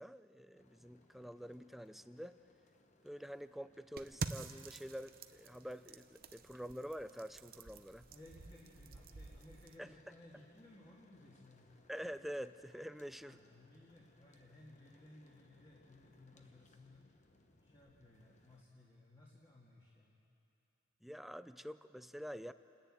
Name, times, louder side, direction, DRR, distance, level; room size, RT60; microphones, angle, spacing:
voice 1, 0.0-2.4 3.0-8.1 9.8-10.0 11.9-13.4 21.0-22.5, equal, ahead, 12 dB, 0.4 m, -47 dB
sound 1, 0.5-18.6, left 2 dB, 35° left, 1.0 m, -69 dB
sound 2, 4.0-9.8, right 4 dB, 45° right, 0.7 m, -48 dB
voice 2, 8.1-11.7 13.2-17.1 17.6-20.2, left 1 dB, 20° left, -5 dB, 2.1 m, -60 dB
28.0 x 10.5 x 9.0 m, 2.7 s
head